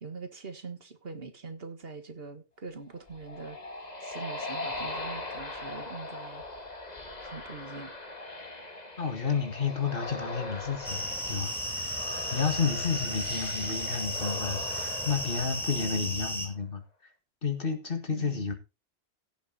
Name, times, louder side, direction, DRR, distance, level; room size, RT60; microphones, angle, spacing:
voice 1, 0.0-3.6 4.0-6.4 7.2-7.9 12.9-13.3 15.8-16.2 18.1-18.5, right 4 dB, 60° right, 1.8 m, -43 dB
sound 1, 2.9-16.5, left 2 dB, 40° left, 2.0 m, -40 dB
voice 2, 9.0-12.0 12.3-16.8 17.4-18.5, left 5 dB, 55° left, 2.1 m, -31 dB
sound 2, 10.8-16.5, equal, ahead, 2.7 m, -34 dB
16.0 x 7.0 x 4.1 m
omnidirectional pair, 1.1 m